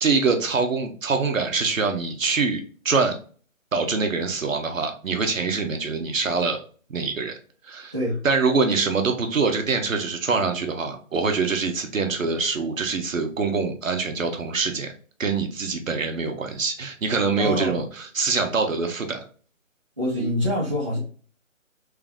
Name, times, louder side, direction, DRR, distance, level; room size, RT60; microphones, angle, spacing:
voice 1, 0.0-3.2 3.7-6.6 6.9-7.4 7.7-7.9 8.2-14.9 15.2-19.2, right 4 dB, 70° right, 4 dB, 0.9 m, -24 dB
voice 2, 17.4-17.8 20.0-21.0, equal, 20° right, -7 dB, 0.8 m, -25 dB
3.3 x 2.4 x 3.3 m, 0.42 s
hypercardioid pair, 175°, 41 cm